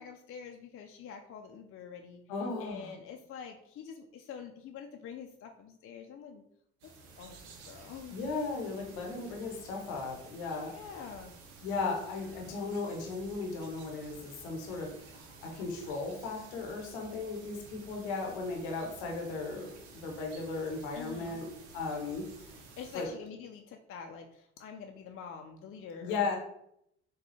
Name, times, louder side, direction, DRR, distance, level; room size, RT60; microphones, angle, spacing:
voice 1, 0.0-6.4 7.2-7.4 7.7-8.2 10.6-11.3 20.9-21.4 22.8-26.2, left 7 dB, 45° left, 4 dB, 0.5 m, -46 dB
voice 2, 2.3-2.9 8.1-10.7 11.6-22.2 22.9-23.1 26.0-26.4, left 4 dB, 85° left, 1 dB, 0.7 m, -36 dB
sound 1, 6.8-23.1, right 4 dB, 85° right, 0.6 m, -53 dB
3.8 x 2.3 x 3.1 m, 0.73 s
hypercardioid pair, 60°, 32 cm